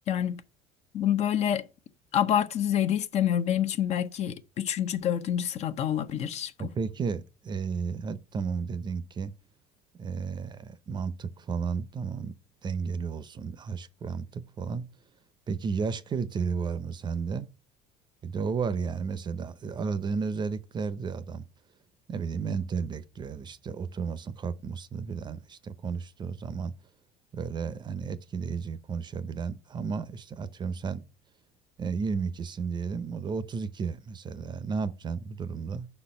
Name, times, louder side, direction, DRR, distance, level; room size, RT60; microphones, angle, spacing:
voice 1, 0.9-1.7 2.1-6.7, left 10 dB, 50° left, 0.7 m, -27 dB
voice 2, 6.6-9.3 10.0-12.4 12.6-14.8 15.5-17.5 18.2-21.4 22.1-26.7 27.3-31.0 31.8-35.9, right 5 dB, 30° right, 0.6 m, -33 dB
5.4 x 4.3 x 5.3 m
supercardioid pair, 110°, 15 cm